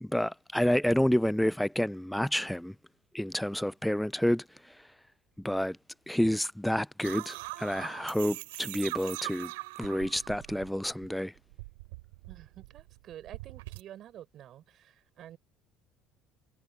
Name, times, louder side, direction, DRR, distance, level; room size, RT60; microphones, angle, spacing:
voice 1, 0.0-2.7 3.1-4.8 5.4-5.8 6.1-9.5 9.8-11.3, equal, 5° left, 0.4 m, -29 dB
sound 1, 7.0-11.1 11.4-13.8, right 22 dB, 90° right, 2.8 m, -42 dB
voice 2, 12.3-15.4, right 11 dB, 55° right, 4.2 m, -49 dB
supercardioid pair, 85°, 0 cm